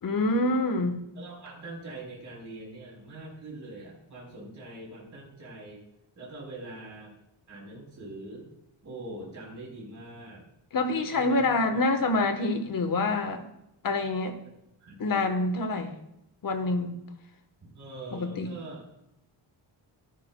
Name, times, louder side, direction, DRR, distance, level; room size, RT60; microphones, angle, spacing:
voice 1, 0.0-1.0 10.7-13.4 13.8-14.3 15.0-16.0 16.4-17.0 18.1-18.5, left 2 dB, 45° left, 7 dB, 1.1 m, -26 dB
voice 2, 1.1-5.8 6.2-7.1 7.5-8.5 8.8-10.4 11.1-11.4 11.7-11.8 14.8-15.2 17.6-18.8, right 2 dB, 40° right, -3 dB, 4.1 m, -43 dB
13.5 x 12.5 x 2.2 m, 0.84 s
wide cardioid pair, 170°, 46 cm